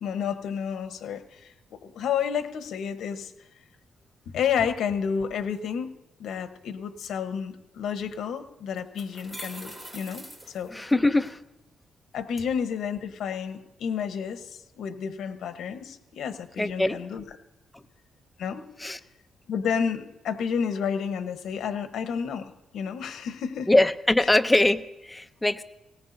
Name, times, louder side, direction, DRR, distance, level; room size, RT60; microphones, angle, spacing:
voice 1, 0.0-3.3 4.3-5.9 6.2-10.7 12.1-17.2 18.4-18.7 19.5-23.7, left 7 dB, 80° left, 9 dB, 1.1 m, -31 dB
sound 1, 8.1-8.2 8.8-11.3, right 1 dB, 15° right, 2.9 m, -43 dB
voice 2, 10.7-11.4 16.6-17.0 17.7-17.8 18.8-19.0 23.7-25.6, left 1 dB, 10° left, 9 dB, 0.5 m, -22 dB
18.5 x 18.0 x 2.7 m, 0.94 s
cardioid pair, 135°, 0 cm